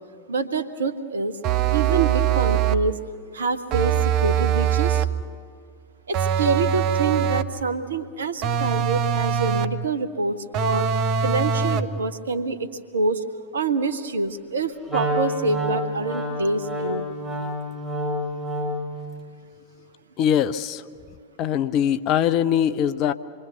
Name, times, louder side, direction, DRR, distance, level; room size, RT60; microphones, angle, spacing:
voice 1, 0.3-1.4 1.7-3.0 3.3-5.1 6.1-12.7 12.9-13.2 13.5-17.1, right 3 dB, 70° right, 13 dB, 1.2 m, -26 dB
sound 1, 1.4-2.9 3.7-5.2 6.1-7.6 8.4-9.9 10.5-12.0, right 8 dB, 40° right, 0.8 m, -22 dB
Wind instrument woodwind instrument, 14.9-18.9, equal, 5° left, 6.5 m, -28 dB
voice 2, 20.2-20.8 21.4-23.1, left 9 dB, 40° left, 12 dB, 0.7 m, -22 dB
26.5 x 23.0 x 7.0 m, 2.2 s
figure-of-eight pair, 90°, 0 cm